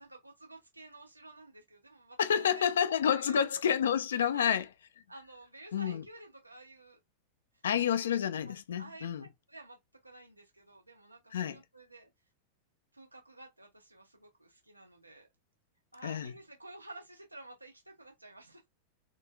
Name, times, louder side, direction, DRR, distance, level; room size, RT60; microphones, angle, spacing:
voice 1, 0.0-2.7 3.1-3.5 4.2-4.6 5.1-7.0 7.8-7.9 8.4-12.1 12.9-15.3 15.9-18.7, right 2 dB, 85° right, 1.2 m, -52 dB
voice 2, 2.2-4.6 5.7-6.0 7.6-9.3 11.3-11.6 16.0-16.3, left 8 dB, 65° left, 0.4 m, -29 dB
3.7 x 2.4 x 2.2 m
figure-of-eight pair, 90°, 0 cm